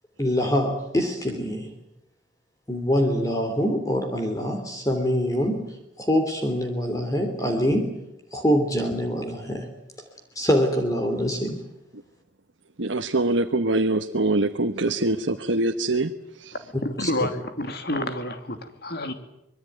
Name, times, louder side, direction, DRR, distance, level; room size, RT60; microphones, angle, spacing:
voice 1, 0.2-1.7 2.7-5.6 6.0-7.9 8.3-9.7 10.3-11.6 17.0-17.1, equal, 20° left, 4 dB, 3.1 m, -24 dB
voice 2, 12.8-16.1 16.4-16.5, right 2 dB, 80° right, 4 dB, 1.3 m, -24 dB
voice 3, 16.5-19.1, left 1 dB, 55° left, 8 dB, 2.8 m, -29 dB
25.5 x 22.0 x 9.4 m, 0.86 s
head